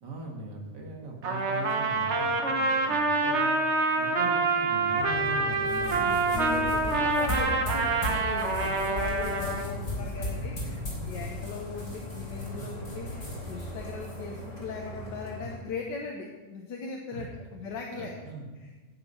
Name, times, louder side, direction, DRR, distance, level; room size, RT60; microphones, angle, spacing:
voice 1, 0.0-3.6 4.0-6.0 6.6-7.1 9.7-9.8 10.6-11.1 12.6-12.7 15.4-15.5 17.1-17.3 17.9-18.5, right 3 dB, 75° right, 1 dB, 2.4 m, -40 dB
Trumpet, 1.2-9.7, right 3 dB, 45° right, 1.2 m, -26 dB
sound 1, 4.9-15.5, left 2 dB, 25° left, 2.0 m, -40 dB
sound 2, 5.6-15.2, left 1 dB, 50° left, 3.8 m, -38 dB
voice 2, 5.9-10.8 11.0-18.1 18.5-18.7, left 4 dB, 85° left, 1 dB, 1.7 m, -39 dB
10.5 x 9.0 x 5.6 m, 1.3 s
omnidirectional pair, 1.9 m